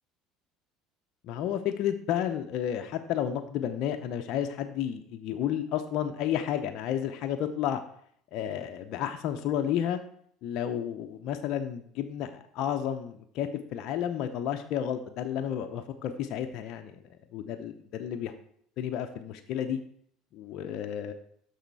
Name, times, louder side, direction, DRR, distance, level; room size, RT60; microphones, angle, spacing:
voice 1, 1.2-7.8 8.3-10.0 10.4-17.0 17.3-18.3 18.8-19.8 20.3-21.1, left 10 dB, 60° left, 5 dB, 0.6 m, -31 dB
6.5 x 6.3 x 4.6 m, 0.64 s
supercardioid pair, 105°, 0 cm